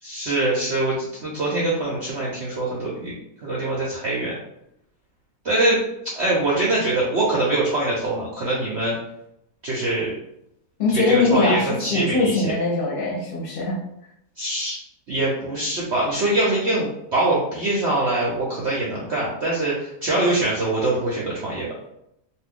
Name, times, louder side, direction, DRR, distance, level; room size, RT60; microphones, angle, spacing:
voice 1, 0.0-3.1 3.4-4.4 5.4-5.8 6.1-9.0 9.6-10.1 10.9-12.5 14.4-14.8 15.1-21.7, right 2 dB, 55° right, -5 dB, 0.8 m, -23 dB
voice 2, 10.8-13.8, left 3 dB, 40° left, -3 dB, 0.9 m, -21 dB
2.6 x 2.5 x 3.6 m, 0.79 s
omnidirectional pair, 1.8 m